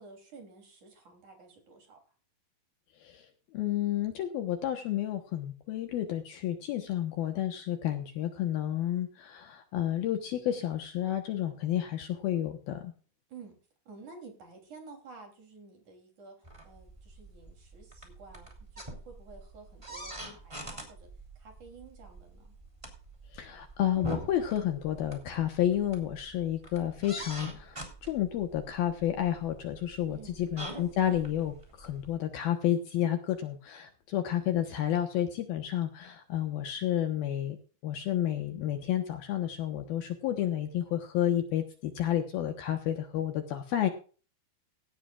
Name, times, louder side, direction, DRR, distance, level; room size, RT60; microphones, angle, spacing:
voice 1, 0.0-2.1 13.3-13.6 13.9-16.4 16.6-21.1 21.4-22.6 30.0-30.5, right 4 dB, 45° right, 4 dB, 4.4 m, -51 dB
voice 2, 3.0-12.9 23.3-37.6 37.8-43.9, left 11 dB, 70° left, 6 dB, 2.7 m, -31 dB
sound 1, 16.4-32.2, right 1 dB, 10° right, 2.6 m, -45 dB
17.0 x 13.0 x 2.5 m, 0.37 s
omnidirectional pair, 5.2 m